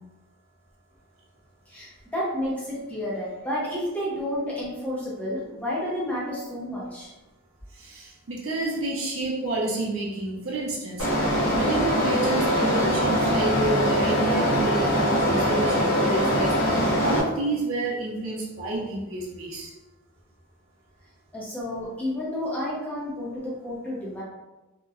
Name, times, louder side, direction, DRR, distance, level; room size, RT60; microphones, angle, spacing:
voice 1, 1.7-7.1 21.3-24.2, left 1 dB, 5° left, -6 dB, 0.5 m, -31 dB
voice 2, 7.8-19.7, right 2 dB, 65° right, -3 dB, 0.6 m, -30 dB
sound 1, 11.0-17.2, equal, 65° left, 0.7 m, -22 dB
2.8 x 2.1 x 2.4 m, 1.1 s
head